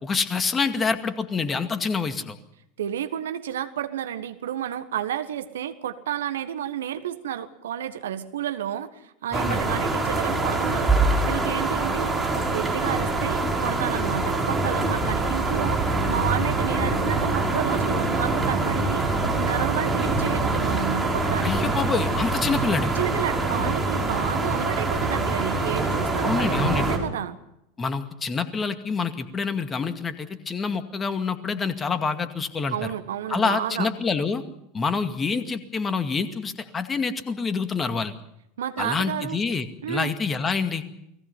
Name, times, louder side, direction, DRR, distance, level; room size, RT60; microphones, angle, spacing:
voice 1, 0.0-2.4 9.3-9.6 21.4-22.9 26.2-27.0 27.8-32.8 33.3-34.4 34.7-38.1 38.8-40.8, left 5 dB, 20° left, 9 dB, 2.1 m, -27 dB
voice 2, 2.8-10.9 11.2-19.1 19.4-21.7 22.9-27.4 32.7-33.9 38.6-39.4 39.8-40.1, right 10 dB, 70° right, 10 dB, 1.5 m, -31 dB
sound 1, 9.3-27.0, right 3 dB, 10° right, 5.4 m, -24 dB
29.5 x 20.0 x 5.5 m, 0.80 s
figure-of-eight pair, 80°, 0 cm